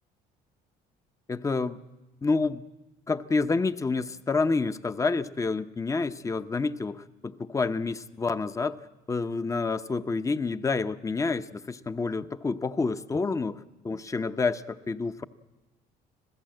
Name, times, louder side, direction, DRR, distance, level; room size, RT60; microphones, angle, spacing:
voice 1, 1.3-1.8 2.2-2.7 3.1-8.8 9.1-15.3, left 4 dB, 20° left, 12 dB, 0.7 m, -28 dB
26.5 x 16.0 x 7.8 m, 1.1 s
cardioid pair, 110°, 17 cm